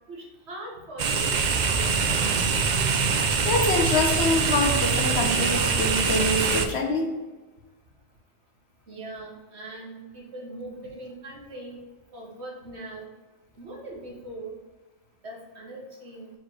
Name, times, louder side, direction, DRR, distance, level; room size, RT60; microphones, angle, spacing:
voice 1, 0.1-1.9 8.9-11.8 12.1-13.1 13.6-14.6 15.2-16.3, right 2 dB, 65° right, -2 dB, 1.4 m, -40 dB
sound 1, 1.0-6.7, right 5 dB, 50° right, 0.5 m, -24 dB
voice 2, 3.5-7.1, left 2 dB, 65° left, 2 dB, 1.2 m, -25 dB
4.8 x 4.5 x 4.6 m, 1.3 s
omnidirectional pair, 1.2 m